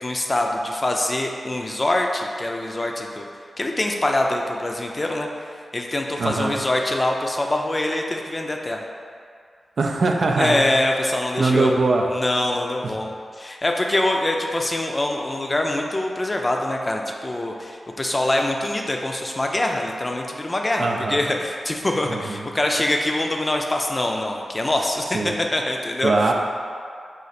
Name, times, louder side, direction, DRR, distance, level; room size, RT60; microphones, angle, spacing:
voice 1, 0.0-3.3 3.6-5.3 5.7-8.8 10.4-11.7 12.1-26.3, left 1 dB, 30° left, 2 dB, 0.4 m, -24 dB
voice 2, 6.2-6.5 9.8-10.6 11.4-12.1 20.8-21.2 22.1-22.4 25.1-25.3 26.0-26.3, right 3 dB, 70° right, 2 dB, 0.4 m, -21 dB
5.0 x 2.5 x 4.1 m, 2.2 s
wide cardioid pair, 85°, 0 cm